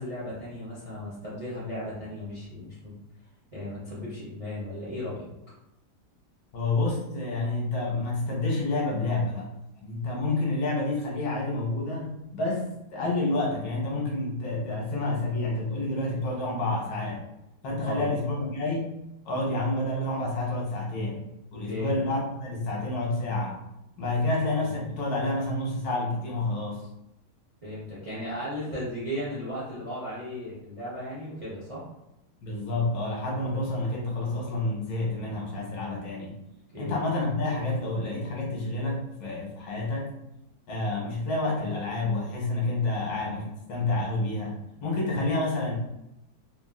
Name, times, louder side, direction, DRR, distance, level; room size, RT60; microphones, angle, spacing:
voice 1, 0.0-2.9 3.5-5.3 17.8-18.0 21.6-21.9 27.6-31.8 36.7-37.0 42.9-43.1, equal, 35° right, -8 dB, 0.6 m, -36 dB
voice 2, 6.5-9.5 9.8-17.2 17.6-18.9 19.2-23.6 24.0-26.8 32.4-36.3 36.8-40.1 40.7-45.8, left 2 dB, 70° left, -3 dB, 1.2 m, -29 dB
3.0 x 2.4 x 2.3 m, 0.89 s
omnidirectional pair, 1.8 m